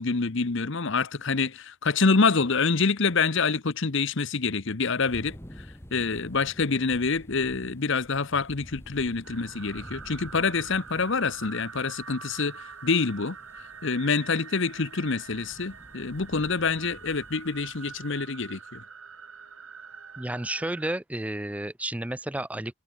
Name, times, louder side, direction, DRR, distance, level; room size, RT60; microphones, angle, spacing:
voice 1, 0.0-5.4 5.9-13.4 13.8-18.8, left 4 dB, 55° left, 0.9 m, -26 dB
sound 1, 5.0-18.2, equal, 10° left, 1.4 m, -49 dB
sound 2, 9.2-20.9, right 6 dB, 70° right, 6.3 m, -45 dB
voice 2, 20.2-22.7, right 1 dB, 5° right, 0.5 m, -31 dB
head